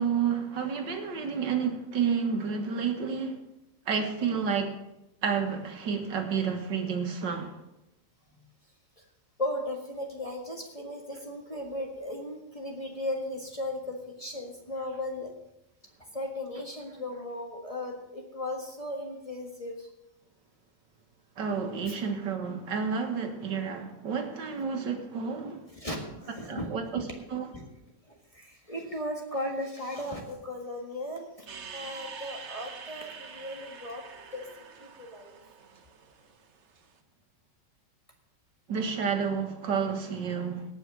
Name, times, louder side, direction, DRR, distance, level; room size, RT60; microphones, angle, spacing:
voice 1, 0.0-3.4 3.9-4.8 5.2-7.5 21.4-25.6 26.5-27.0 27.3-27.5 38.7-40.7, right 6 dB, 75° right, 2.2 m, -30 dB
voice 2, 9.4-15.3 16.1-19.9 21.9-22.0 25.7-26.7 27.0-27.1 27.5-27.7 28.1-31.5 31.7-34.0 34.3-34.4 34.8-35.3, left 1 dB, 20° left, 1.6 m, -36 dB
sound 1, 31.5-36.9, right 6 dB, 45° right, 1.1 m, -45 dB
18.0 x 6.1 x 6.3 m
omnidirectional pair, 1.9 m